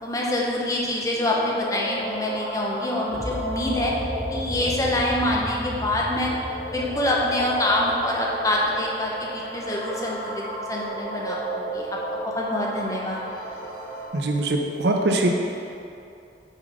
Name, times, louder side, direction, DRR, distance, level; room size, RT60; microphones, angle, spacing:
voice 1, 0.0-3.9 4.3-6.3 6.7-12.0 12.2-13.3, left 1 dB, 20° left, -3 dB, 0.7 m, -26 dB
sound 1, 0.5-14.1, right 1 dB, 55° left, 1.5 m, -34 dB
sound 2, 3.1-9.2, equal, 10° right, 1.4 m, -35 dB
voice 2, 14.1-15.3, right 2 dB, 70° right, 2 dB, 0.6 m, -22 dB
6.5 x 3.8 x 5.0 m, 2.6 s
head